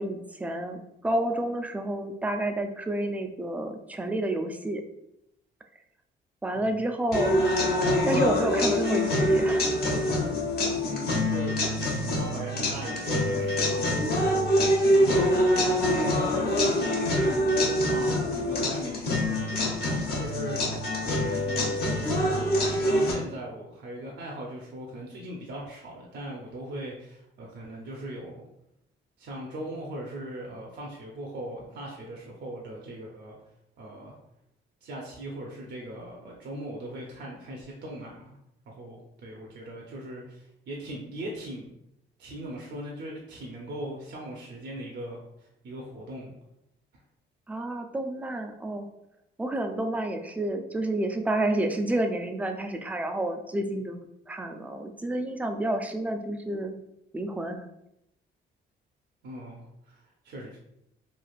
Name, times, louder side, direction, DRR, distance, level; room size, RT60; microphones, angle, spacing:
voice 1, 0.0-4.8 6.4-7.7 8.0-9.6 47.5-48.9 49.4-56.7 57.1-57.7, right 1 dB, 5° right, 5 dB, 0.3 m, -30 dB
sound 1, 7.1-23.1, left 1 dB, 50° left, 1.0 m, -25 dB
voice 2, 10.8-14.5 14.9-21.7 22.0-28.4 29.2-33.4 33.8-34.2 34.8-38.4 38.7-41.8 42.2-46.3 46.9-47.0 59.2-60.6, right 1 dB, 60° right, -1 dB, 0.6 m, -40 dB
3.2 x 2.4 x 2.4 m, 0.81 s
cardioid pair, 90°, 20 cm